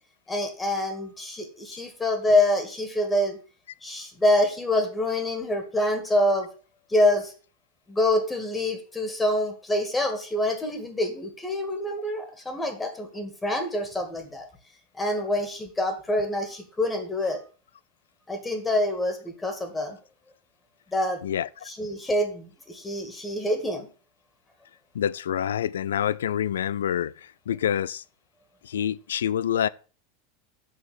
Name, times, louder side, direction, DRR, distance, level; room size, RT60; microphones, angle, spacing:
voice 1, 0.3-3.4 3.8-6.5 6.9-7.3 7.9-14.5 14.9-17.4 18.3-20.0 20.9-21.2 21.7-23.9, left 1 dB, 15° left, 1.9 m, -26 dB
voice 2, 24.9-27.1 27.5-28.0 28.6-29.7, left 9 dB, 70° left, 0.3 m, -26 dB
6.2 x 6.1 x 7.3 m
figure-of-eight pair, 85°, 0 cm